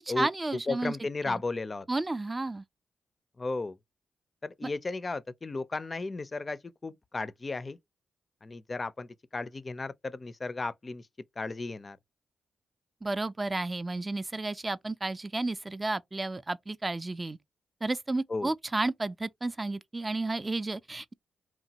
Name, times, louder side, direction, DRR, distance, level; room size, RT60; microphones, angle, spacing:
voice 1, 0.2-1.0 1.2-1.4 1.9-2.6 4.6-4.7 13.0-17.4 17.8-21.1, right 2 dB, 30° right, 0.3 m, -32 dB
voice 2, 0.7-1.9 3.4-3.8 4.4-7.8 8.4-11.0 11.4-12.0 18.3-18.5, left 3 dB, 40° left, 0.4 m, -34 dB
2.9 x 2.2 x 2.8 m
supercardioid pair, 45°, 0 cm